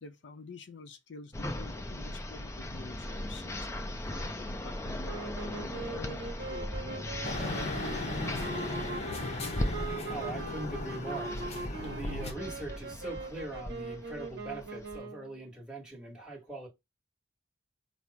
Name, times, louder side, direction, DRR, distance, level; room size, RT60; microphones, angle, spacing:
voice 1, 0.0-7.2, left 3 dB, 65° left, 0.6 m, -49 dB
sound 1, 1.3-15.0, left 1 dB, 15° left, 0.4 m, -38 dB
sound 2, 5.0-15.4, right 3 dB, 60° right, 0.8 m, -42 dB
sound 3, 7.2-12.3, left 2 dB, 35° left, 0.8 m, -37 dB
voice 2, 10.1-11.3 11.8-16.7, right 2 dB, 5° right, 1.3 m, -42 dB
5.6 x 2.0 x 4.6 m
head